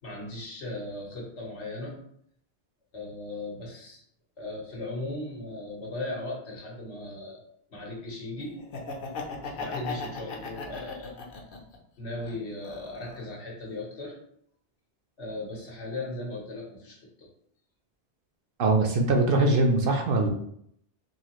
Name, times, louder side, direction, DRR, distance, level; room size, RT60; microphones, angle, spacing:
voice 1, 0.0-2.0 2.9-4.0 4.4-7.4 7.7-8.6 9.4-11.1 12.0-14.1 15.2-17.3, left 2 dB, 85° left, -3 dB, 1.5 m, -37 dB
Laughter, 8.6-11.8 12.2-13.3, left 4 dB, 55° left, 0.8 m, -37 dB
voice 2, 18.6-20.3, right 2 dB, 60° right, 3 dB, 0.7 m, -22 dB
4.0 x 2.8 x 3.0 m, 0.68 s
omnidirectional pair, 1.1 m